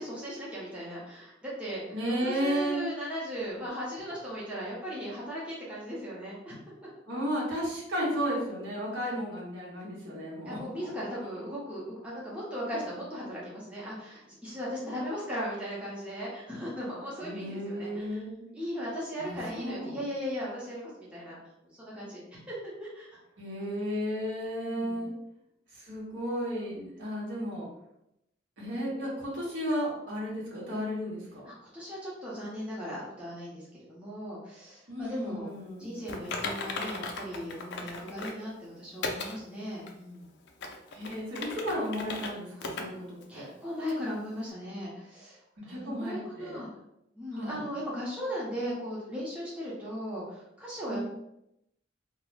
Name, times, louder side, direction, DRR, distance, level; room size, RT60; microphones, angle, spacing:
voice 1, 0.0-2.0 2.2-6.6 9.0-9.2 10.5-18.2 18.5-21.4 21.8-23.1 24.6-25.0 31.4-35.5 35.8-40.3 42.5-42.9 43.3-46.7 47.1-51.0, equal, 5° right, -7 dB, 0.6 m, -37 dB
voice 2, 1.9-2.9 7.1-10.9 17.2-18.4 19.2-20.0 23.4-25.1 25.8-27.7 28.6-31.5 34.9-35.9 40.9-43.5 45.7-46.6 47.3-47.6 50.9-51.0, equal, 75° right, -6 dB, 1.0 m, -33 dB
Typing, 36.1-38.4 39.0-39.4 39.9-40.0 40.5-42.3 42.6-42.9 43.2-43.3 43.9-44.0, left 3 dB, 60° left, 0.4 m, -36 dB
2.3 x 2.0 x 3.1 m, 0.83 s
head